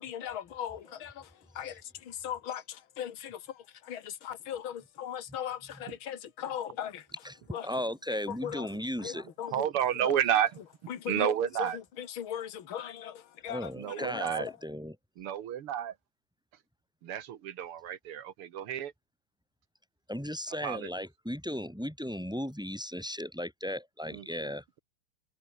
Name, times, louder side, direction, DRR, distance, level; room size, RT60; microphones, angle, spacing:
voice 1, 0.0-7.2 7.5-7.7 8.1-8.7 9.0-9.7 10.0-10.2 10.9-14.6, left 9 dB, 65° left, 2.4 m, -39 dB
voice 2, 7.6-9.2 13.5-14.9 20.1-24.6, equal, ahead, 5.5 m, -36 dB
voice 3, 9.5-10.5 11.1-11.8 13.7-14.5 15.2-15.9 17.0-18.9 20.6-20.9 24.1-24.5, right 10 dB, 80° right, 2.2 m, -31 dB
omnidirectional pair, 2.4 m